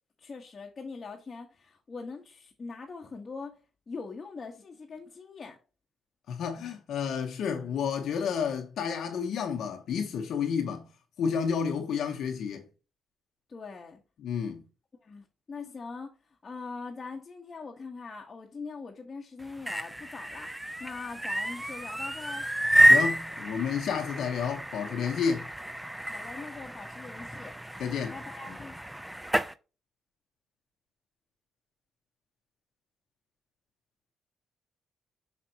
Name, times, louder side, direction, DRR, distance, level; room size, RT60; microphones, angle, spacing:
voice 1, 0.2-3.6 3.9-5.6 13.5-14.0 15.0-22.5 26.1-27.6 28.1-28.8, left 4 dB, 35° left, 1.3 m, -42 dB
voice 2, 6.3-10.9 11.2-12.6 14.2-14.6 22.9-25.5 27.8-28.1, left 6 dB, 70° left, 1.0 m, -30 dB
sound 1, 19.4-29.5, right 1 dB, 5° right, 0.4 m, -28 dB
6.1 x 5.9 x 2.9 m
cardioid pair, 90°, 0 cm